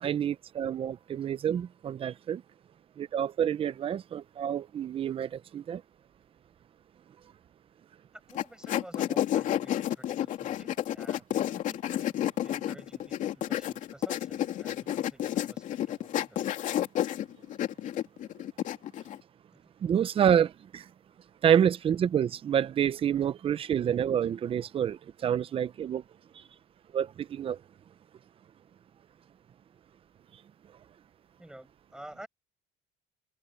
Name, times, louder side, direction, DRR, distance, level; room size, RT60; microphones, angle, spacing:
voice 1, 0.0-2.4 3.0-5.8 19.8-20.8 21.4-26.0 26.9-27.6, right 9 dB, 35° right, 0.8 m, -28 dB
voice 2, 8.1-11.9 12.4-16.5 19.5-19.6 31.4-32.3, right 1 dB, 5° right, 7.1 m, -51 dB
sound 1, 8.3-19.2, left 12 dB, 55° left, 2.8 m, -31 dB
cardioid pair, 120°, 15 cm